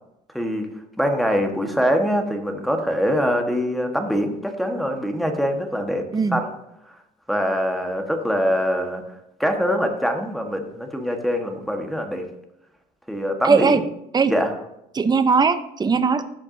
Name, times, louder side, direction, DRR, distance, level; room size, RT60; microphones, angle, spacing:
voice 1, 0.3-0.7 1.0-6.0 6.3-6.5 7.3-9.0 9.4-12.2 13.1-13.8 14.3-14.5, equal, ahead, 3 dB, 1.3 m, -23 dB
voice 2, 13.4-13.8 14.1-14.3 14.9-16.2, right 5 dB, 25° right, 11 dB, 0.7 m, -19 dB
14.0 x 6.0 x 2.7 m, 0.84 s
cardioid pair, 110°, 17 cm